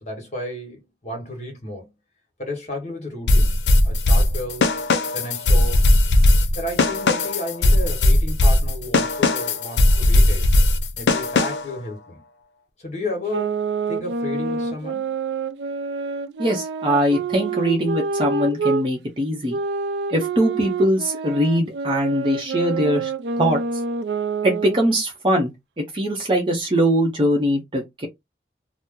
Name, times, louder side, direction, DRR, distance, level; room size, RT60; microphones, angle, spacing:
voice 1, 0.0-1.9 2.4-4.7 5.1-5.8 6.5-10.4 11.0-12.2 12.8-15.1, left 1 dB, 40° left, 1.3 m, -32 dB
sound 1, 3.3-11.8, left 1 dB, 85° left, 0.5 m, -18 dB
sound 2, 13.3-18.8 19.5-25.0, right 4 dB, 80° right, 0.4 m, -27 dB
voice 2, 16.4-19.6 20.1-23.1 23.4-23.6 24.4-25.5 25.8-28.1, equal, 30° right, 0.7 m, -21 dB
2.8 x 2.0 x 3.6 m
head